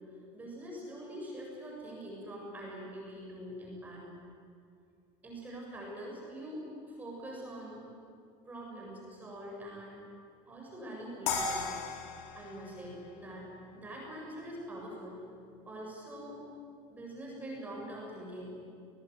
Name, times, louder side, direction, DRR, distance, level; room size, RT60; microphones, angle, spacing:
voice 1, 0.3-4.0 5.2-7.8 8.5-10.0 10.5-11.6 12.3-13.5 13.7-15.2 15.7-16.4 16.9-18.5, right 1 dB, 15° right, -2 dB, 7.8 m, -44 dB
sound 1, 11.3-14.3, left 5 dB, 80° left, 4.6 m, -37 dB
29.5 x 20.0 x 9.8 m, 2.3 s
cardioid pair, 165°, 13 cm